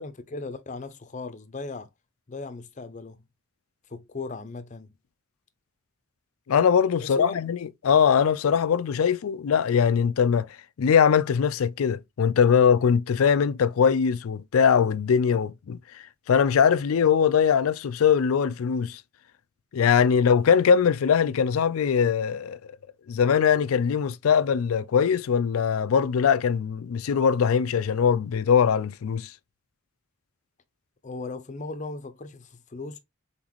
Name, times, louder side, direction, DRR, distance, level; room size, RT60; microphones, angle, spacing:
voice 1, 0.0-1.9 2.3-3.2 3.9-4.9 7.0-7.4 31.0-33.0, left 3 dB, 35° left, 0.6 m, -37 dB
voice 2, 6.5-7.6 7.8-10.5 10.8-15.8 16.3-19.0 19.7-22.6 23.1-29.3, left 7 dB, 85° left, 0.4 m, -21 dB
4.0 x 3.9 x 3.0 m
head